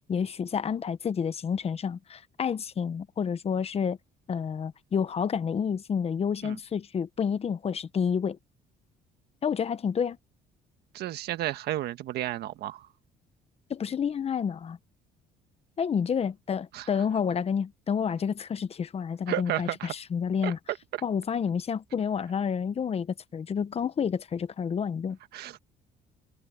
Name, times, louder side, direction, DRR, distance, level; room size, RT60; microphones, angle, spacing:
voice 1, 0.1-4.0 4.3-8.4 9.4-10.2 13.7-14.8 15.8-20.6 21.0-25.2, left 7 dB, 35° left, 1.1 m, -29 dB
voice 2, 10.9-12.9 16.7-16.9 19.3-19.9 20.4-21.0 25.3-25.6, right 14 dB, 75° right, 1.5 m, -32 dB
cardioid pair, 110°, 17 cm